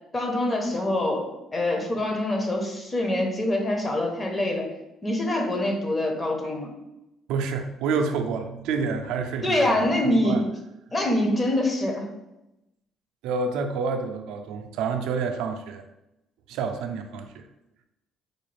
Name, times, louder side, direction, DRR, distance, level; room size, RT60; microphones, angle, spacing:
voice 1, 0.1-1.3 1.5-4.7 5.0-6.7 9.4-10.4 10.9-12.1, left 1 dB, 25° left, 2 dB, 0.8 m, -25 dB
voice 2, 7.3-9.9 10.2-10.4 13.2-15.8 16.5-17.5, right 5 dB, 85° right, 6 dB, 0.4 m, -28 dB
4.0 x 2.4 x 3.2 m, 0.90 s
cardioid pair, 100°, 0 cm